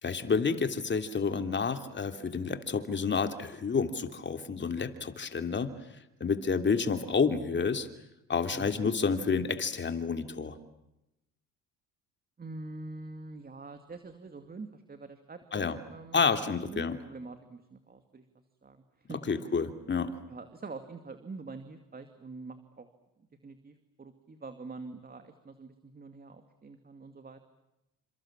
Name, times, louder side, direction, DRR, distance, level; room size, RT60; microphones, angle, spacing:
voice 1, 0.0-5.7 6.2-7.9 8.3-10.6 15.5-15.8 16.1-17.0 19.1-20.2, left 5 dB, 30° left, 8 dB, 3.0 m, -29 dB
voice 2, 8.5-8.9 12.4-16.3 16.7-18.2 18.6-19.4 20.3-22.9 23.4-27.4, right 3 dB, 25° right, 8 dB, 2.5 m, -45 dB
29.5 x 27.0 x 7.5 m, 0.90 s
cardioid pair, 110°, 35 cm